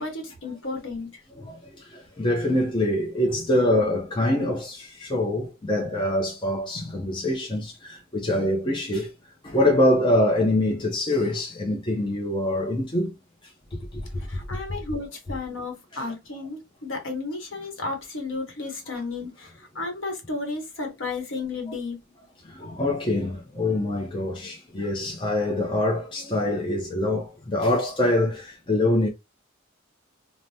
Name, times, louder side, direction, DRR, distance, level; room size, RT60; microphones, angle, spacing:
voice 1, 0.0-1.2 14.2-22.0, left 3 dB, 60° left, 1.0 m, -33 dB
voice 2, 1.4-9.1 9.4-13.1 13.9-14.6 15.9-16.0 18.9-19.0 22.5-29.1, left 1 dB, 25° left, 0.5 m, -25 dB
3.3 x 2.1 x 2.6 m
head